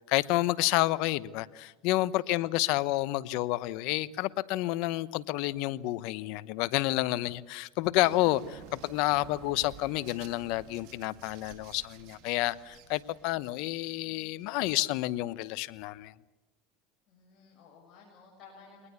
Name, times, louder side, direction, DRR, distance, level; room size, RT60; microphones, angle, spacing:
voice 1, 0.1-16.1, left 17 dB, 70° left, 0.9 m, -29 dB
sound 1, 8.0-14.4, right 9 dB, 65° right, 2.3 m, -52 dB
voice 2, 17.1-18.9, left 5 dB, 50° left, 7.5 m, -55 dB
22.5 x 19.5 x 8.3 m
supercardioid pair, 105°, 0 cm